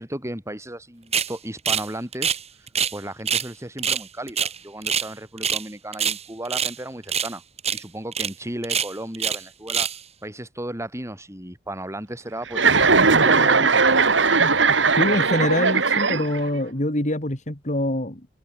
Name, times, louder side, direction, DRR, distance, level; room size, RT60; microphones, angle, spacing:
voice 1, 0.0-2.4 2.9-7.4 7.7-9.9 10.2-12.7 13.0-14.1, right 1 dB, 15° right, 5.1 m, -34 dB
sound 1, 1.1-1.3 1.7-1.9 2.1-3.0 3.3-3.5 3.8-5.1 5.4-5.7 5.9-6.8 7.1-7.3 7.6-7.8 8.1-8.3 8.6-9.4 9.7-10.0, right 7 dB, 35° right, 3.2 m, -25 dB
Chuckle chortle, 12.5-16.6, right 4 dB, 70° right, 2.4 m, -18 dB
voice 2, 15.0-18.3, left 1 dB, 40° left, 3.5 m, -24 dB
head